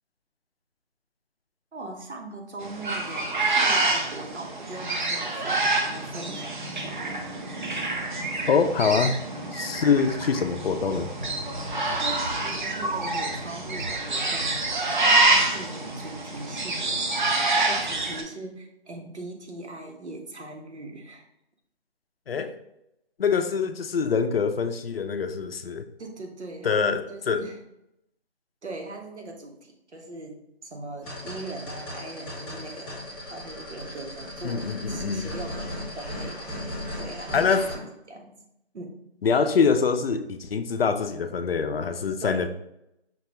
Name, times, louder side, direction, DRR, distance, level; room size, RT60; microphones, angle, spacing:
voice 1, 1.7-7.1 12.0-21.3 26.0-27.6 28.6-38.4 38.7-38.9 42.2-42.5, right 2 dB, 90° right, 2 dB, 1.1 m, -40 dB
sound 1, 2.6-18.2, right 2 dB, 45° right, 0.6 m, -27 dB
voice 2, 8.5-9.2 9.5-11.1 22.3-22.5 23.2-25.9 26.6-27.4 34.4-35.3 37.3-37.7 39.2-42.5, left 5 dB, 60° left, 9 dB, 0.5 m, -24 dB
sound 2, 31.0-37.8, left 1 dB, 10° left, 1.0 m, -37 dB
5.8 x 2.3 x 2.9 m, 0.82 s
figure-of-eight pair, 165°, 33 cm